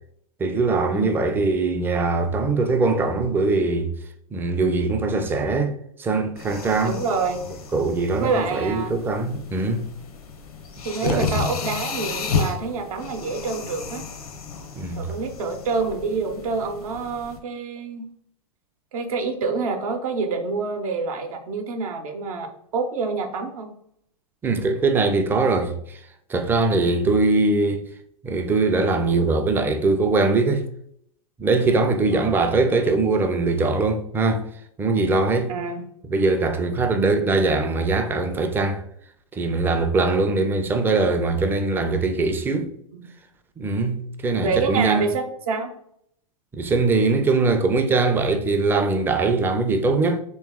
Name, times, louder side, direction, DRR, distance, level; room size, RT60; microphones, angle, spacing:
voice 1, 0.4-3.9 4.3-5.7 6.0-7.0 7.7-9.9 11.0-11.3 14.8-15.1 24.4-26.0 26.3-27.8 28.2-30.6 31.4-34.4 34.8-35.5 36.1-38.8 39.3-42.7 43.6-45.0 46.5-50.2, right 3 dB, 10° right, 0.4 m, -21 dB
sound 1, 6.4-17.4, left 5 dB, 85° left, 0.7 m, -32 dB
voice 2, 6.8-7.4 8.2-9.0 10.8-14.1 15.0-18.1 18.9-23.7 32.1-32.4 35.5-35.8 42.9-43.1 44.4-45.7, right 4 dB, 75° right, 0.8 m, -27 dB
3.1 x 3.1 x 3.5 m
hypercardioid pair, 120°, 19 cm